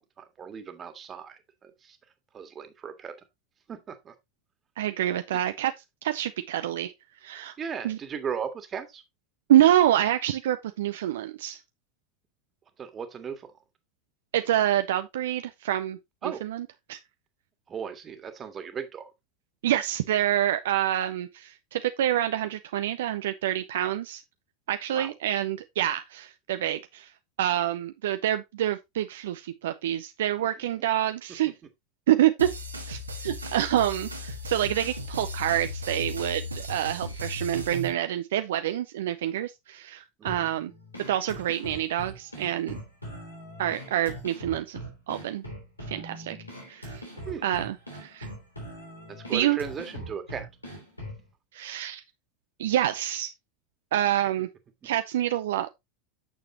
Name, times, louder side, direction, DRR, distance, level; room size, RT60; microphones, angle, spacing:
voice 1, 0.2-2.0 2.3-3.1 3.7-4.1 5.3-5.4 7.6-9.0 12.8-13.5 16.2-16.4 17.7-19.1 24.9-25.1 30.4-30.7 40.2-40.5 47.3-47.5 49.1-50.5, right 7 dB, 30° right, 1.8 m, -37 dB
voice 2, 4.8-5.7 6.0-6.9 7.2-7.5 7.8-8.0 9.5-11.6 14.3-16.0 16.4-17.0 19.6-24.2 24.7-27.1 27.4-31.5 32.1-32.5 32.9-40.7 41.1-42.8 43.6-44.8 45.1-45.4 45.9-46.4 46.7-47.0 47.4-48.3 49.3-49.6 51.5-52.0 52.6-53.3 53.9-54.5 54.8-55.7, right 12 dB, 65° right, 0.5 m, -27 dB
sound 1, 32.4-37.9, left 1 dB, 85° right, 1.7 m, -36 dB
sound 2, 40.3-51.3, equal, 90° left, 3.2 m, -41 dB
8.9 x 6.7 x 2.9 m
figure-of-eight pair, 80°, 0 cm